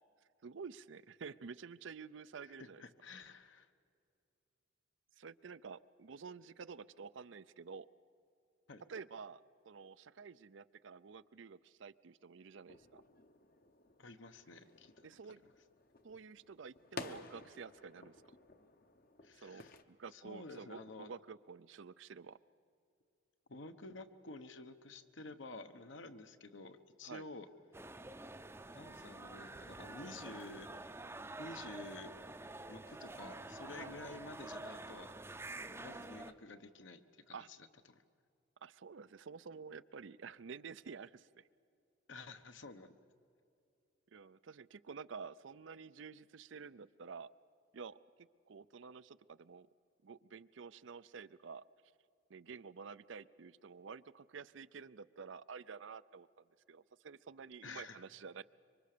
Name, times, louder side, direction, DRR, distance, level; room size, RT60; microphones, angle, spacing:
voice 1, 0.4-2.8 5.2-7.9 8.9-9.4 9.7-13.0 15.0-15.4 16.0-18.2 19.4-22.4 27.0-27.2 33.8-34.1 37.3-37.5 38.6-41.5 44.1-47.3 47.7-48.0 48.5-49.7 50.0-51.6 52.3-58.4, right 5 dB, 70° right, 16 dB, 0.5 m, -50 dB
voice 2, 2.5-3.7 8.7-8.8 14.0-14.9 19.2-19.7 20.1-21.1 23.5-27.5 28.7-30.7 31.4-32.2 32.7-35.1 35.6-37.6 37.9-38.0 42.1-42.9 57.6-58.0, left 3 dB, 70° left, 9 dB, 1.1 m, -51 dB
sound 1, 12.7-19.8, left 3 dB, 45° left, 0.9 m, -53 dB
sound 2, 27.7-36.3, right 2 dB, 10° right, 0.6 m, -48 dB
26.0 x 24.0 x 6.8 m, 2.5 s
head